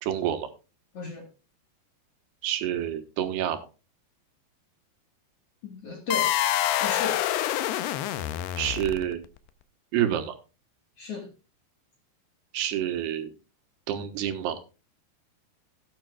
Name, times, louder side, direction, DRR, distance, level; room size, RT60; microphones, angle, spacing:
voice 1, 0.0-0.5 2.4-3.6 8.6-9.2 9.9-10.4 12.5-13.3 13.9-14.6, right 11 dB, 80° right, 3.2 m, -28 dB
voice 2, 0.9-1.3 5.6-6.4 6.8-7.2 11.0-11.3, left 3 dB, 50° left, 1.9 m, -35 dB
sound 1, 6.1-9.3, left 13 dB, 80° left, 2.7 m, -26 dB
17.0 x 8.8 x 2.3 m
omnidirectional pair, 4.7 m